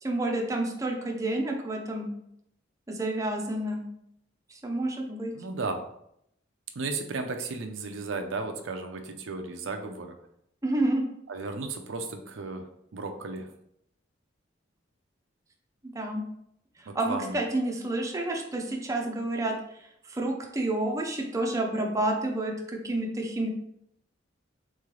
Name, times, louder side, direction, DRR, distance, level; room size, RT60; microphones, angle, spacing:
voice 1, 0.0-2.1 2.9-3.8 4.5-5.3 10.6-11.0 15.8-16.2 16.8-19.5 20.0-23.5, right 1 dB, 15° right, 1 dB, 0.5 m, -29 dB
voice 2, 5.3-5.9 6.8-10.2 11.3-13.5 16.9-17.4, right 3 dB, 75° right, 5 dB, 0.5 m, -34 dB
3.7 x 3.2 x 3.7 m, 0.75 s
head